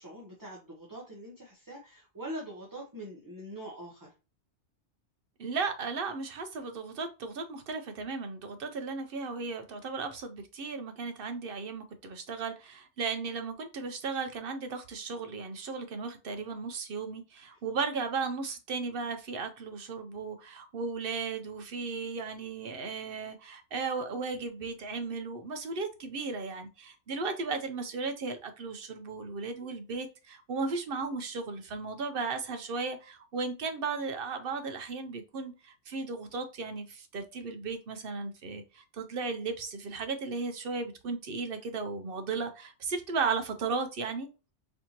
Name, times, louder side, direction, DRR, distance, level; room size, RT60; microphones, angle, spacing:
voice 1, 0.0-4.1 17.5-17.6, right 1 dB, 20° right, 0.6 m, -43 dB
voice 2, 5.4-44.3, right 4 dB, 60° right, 0.7 m, -35 dB
4.3 x 2.8 x 2.8 m
omnidirectional pair, 1.2 m